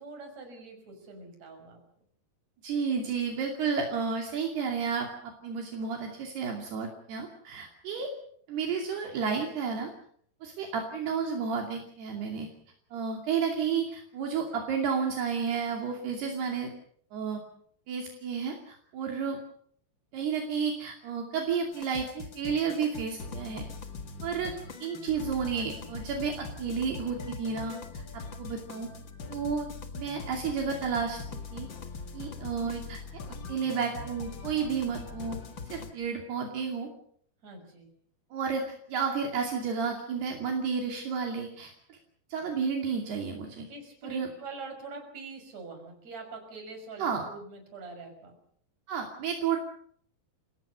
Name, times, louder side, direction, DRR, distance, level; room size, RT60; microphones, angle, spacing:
voice 1, 0.0-1.8 25.6-25.9 37.4-37.9 43.7-48.4, right 3 dB, 40° right, 5 dB, 7.0 m, -44 dB
voice 2, 2.6-8.1 8.5-9.9 10.4-12.5 12.9-16.7 17.1-17.4 17.9-19.4 20.1-23.7 24.2-28.9 29.3-29.7 30.0-31.2 31.5-31.7 32.1-33.0 33.5-35.4 35.7-36.9 38.3-42.0 42.3-43.7 44.0-44.3 47.0-47.2 48.9-49.6, right 6 dB, 70° right, 2 dB, 4.6 m, -31 dB
sound 1, 21.7-35.9, left 4 dB, 45° left, 1.6 m, -42 dB
30.0 x 18.0 x 6.7 m, 0.62 s
omnidirectional pair, 4.9 m